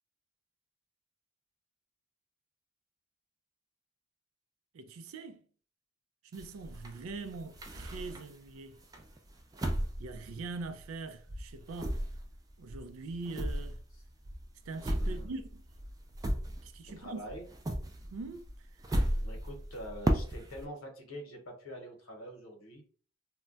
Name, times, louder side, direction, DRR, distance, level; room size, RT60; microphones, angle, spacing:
voice 1, 4.7-5.4 6.3-8.8 10.0-12.0 12.6-13.8 14.7-15.6 16.6-17.3 18.1-18.5, right 3 dB, 90° right, 0.4 m, -42 dB
sound 1, 6.3-8.5 8.9-11.0 11.3-17.0 17.3-20.7, right 1 dB, 20° right, 0.3 m, -35 dB
voice 2, 15.0-15.3 17.0-17.4 19.2-22.8, equal, 85° left, 0.9 m, -45 dB
2.2 x 2.1 x 3.7 m
head